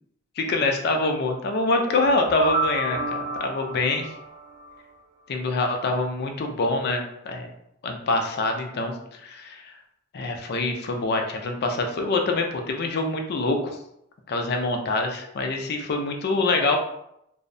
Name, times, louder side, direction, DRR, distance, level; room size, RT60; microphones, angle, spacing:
voice 1, 0.4-4.1 5.3-7.5 7.8-8.9 9.2-9.7 10.1-13.8 14.3-16.8, left 2 dB, 55° left, 3 dB, 0.4 m, -25 dB
sound 1, 1.7-4.8, right 2 dB, 40° right, 0.4 m, -30 dB
2.6 x 2.1 x 2.5 m, 0.78 s
head